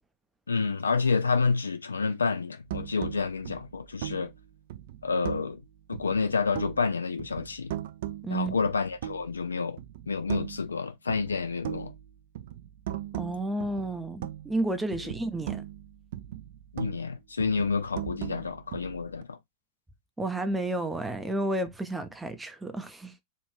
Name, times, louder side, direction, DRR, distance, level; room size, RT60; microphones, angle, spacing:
voice 1, 0.5-4.3 5.0-5.6 5.9-7.7 8.3-9.8 10.1-11.9 16.7-19.4, left 4 dB, 75° left, 0.5 m, -29 dB
sound 1, 2.7-5.6 5.9-6.9 7.2-9.4 9.8-10.8 11.1-14.7 14.9-17.1 17.4-19.2, right 12 dB, 55° right, 0.4 m, -39 dB
voice 2, 8.2-8.5 13.1-15.6 20.2-23.1, right 2 dB, 10° right, 0.6 m, -31 dB
3.3 x 2.6 x 3.1 m
figure-of-eight pair, 90°, 0 cm